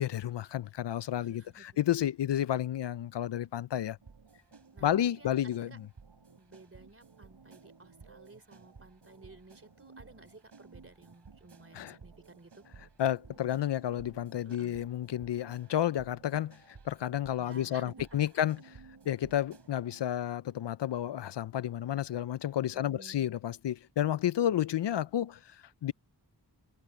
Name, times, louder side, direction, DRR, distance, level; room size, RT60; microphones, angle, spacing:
voice 1, 0.0-4.0 4.8-5.9 11.7-12.0 13.0-18.6 19.1-25.9, left 11 dB, 75° left, 0.5 m, -31 dB
voice 2, 1.2-1.7 4.7-5.8 6.4-12.6 14.5-14.8 17.4-18.1 22.7-23.3, right 2 dB, 30° right, 3.4 m, -54 dB
sound 1, 4.0-20.0, right 4 dB, 70° right, 7.5 m, -56 dB
wide cardioid pair, 75°, 43 cm